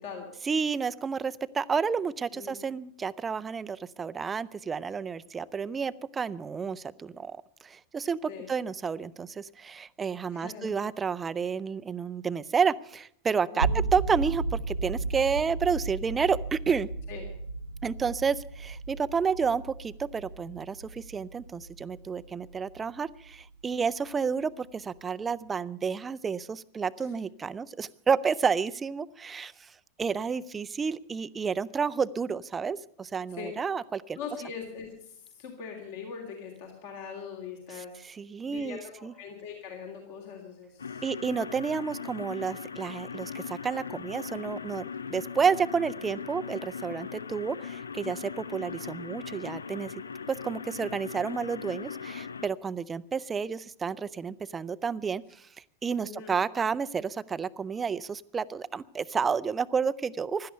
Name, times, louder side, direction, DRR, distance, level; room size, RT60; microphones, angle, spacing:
voice 1, 0.4-16.9 17.8-29.7 30.0-34.2 37.7-39.1 41.0-49.9 50.3-55.2 55.8-60.5, right 6 dB, 15° right, 17 dB, 0.6 m, -30 dB
voice 2, 10.3-10.7 13.5-13.9 17.1-17.2 27.0-27.1 33.3-33.5 34.1-37.9 38.5-41.0 41.7-41.9 56.0-56.3, left 6 dB, 50° left, 2 dB, 3.0 m, -41 dB
sound 1, 13.6-23.6, right 3 dB, 75° right, 0.8 m, -34 dB
sound 2, 40.8-52.5, left 6 dB, 75° left, 0.6 m, -39 dB
16.5 x 12.5 x 6.7 m, 0.68 s
figure-of-eight pair, 90°, 0 cm